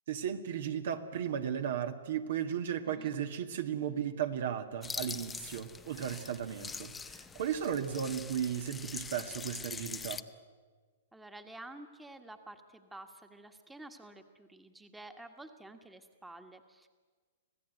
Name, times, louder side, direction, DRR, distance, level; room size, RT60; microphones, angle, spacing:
voice 1, 0.1-10.2, right 9 dB, 65° right, 7 dB, 1.8 m, -35 dB
voice 2, 2.8-3.1 7.9-8.2 11.1-16.9, right 2 dB, 5° right, 6 dB, 1.5 m, -50 dB
sound 1, 4.8-10.2, left 5 dB, 10° left, 0.8 m, -43 dB
26.0 x 16.0 x 9.3 m, 1.5 s
hypercardioid pair, 130°, 0 cm